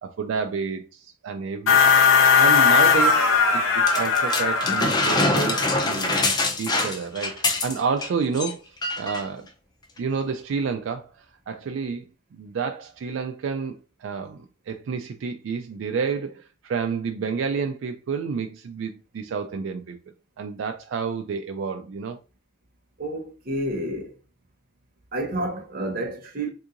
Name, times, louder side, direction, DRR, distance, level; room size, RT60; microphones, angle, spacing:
voice 1, 0.0-1.9 2.4-6.1 6.6-9.5 10.0-12.0 12.3-20.0 20.4-22.2, right 5 dB, 75° right, 0.3 m, -30 dB
sound 1, 1.7-6.2, left 6 dB, 85° left, 0.8 m, -19 dB
sound 2, 3.9-8.1 8.3-8.5 8.8-9.2 10.0-10.1, left 2 dB, 20° left, 0.5 m, -24 dB
voice 2, 23.0-24.2 25.1-26.5, right 1 dB, 45° right, 0.7 m, -29 dB
3.6 x 2.8 x 2.4 m
head